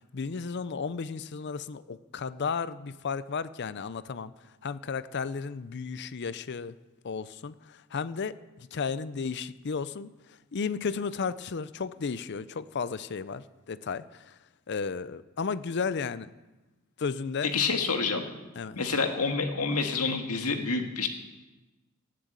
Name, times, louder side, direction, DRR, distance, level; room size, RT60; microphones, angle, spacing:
voice 1, 0.1-4.3 4.6-6.7 7.0-10.1 10.5-14.3 14.7-16.3 17.0-17.5 18.6-18.8, left 5 dB, 50° left, 16 dB, 0.5 m, -34 dB
voice 2, 17.4-18.2 18.8-21.1, left 4 dB, 90° left, 5 dB, 1.8 m, -28 dB
18.5 x 7.7 x 8.1 m, 1.1 s
head